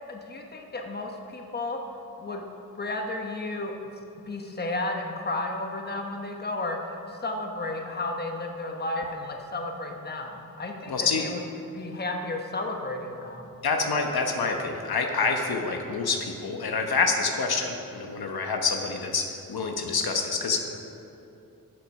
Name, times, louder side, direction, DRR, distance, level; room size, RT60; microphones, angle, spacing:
voice 1, 0.1-1.8 2.2-2.4 2.7-3.8 4.3-11.4 11.7-13.6, left 2 dB, 25° left, 2 dB, 1.0 m, -33 dB
voice 2, 10.9-11.2 13.6-20.6, left 4 dB, 80° left, 3 dB, 1.1 m, -27 dB
12.0 x 8.0 x 5.4 m, 2.8 s
wide cardioid pair, 130°, 37 cm